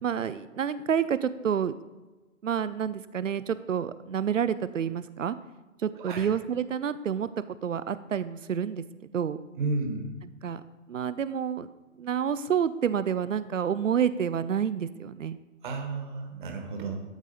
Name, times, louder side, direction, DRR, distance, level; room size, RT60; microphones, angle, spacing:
voice 1, 0.0-1.7 2.4-5.4 5.8-7.3 7.6-8.8 9.1-9.4 10.4-10.6 10.9-11.7 12.0-15.4, right 8 dB, 75° right, 15 dB, 0.6 m, -28 dB
voice 2, 9.6-10.2 15.6-17.0, right 3 dB, 40° right, 3 dB, 1.5 m, -32 dB
12.0 x 4.7 x 4.0 m, 1.2 s
figure-of-eight pair, 125°, 39 cm